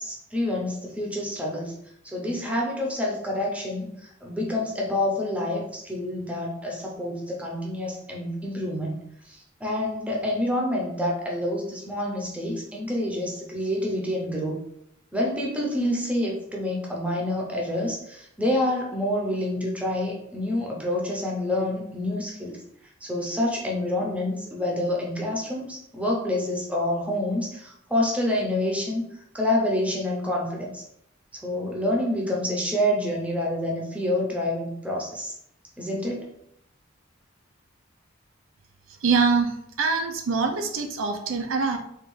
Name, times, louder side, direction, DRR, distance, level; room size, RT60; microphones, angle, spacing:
voice 1, 0.0-1.7 2.0-9.0 9.2-14.6 15.1-22.6 23.0-29.1 29.3-30.8 31.4-35.3 35.8-36.3, left 1 dB, 5° right, -2 dB, 0.6 m, -27 dB
voice 2, 39.0-41.8, right 4 dB, 85° right, 5 dB, 0.5 m, -24 dB
3.5 x 2.4 x 3.1 m, 0.74 s
head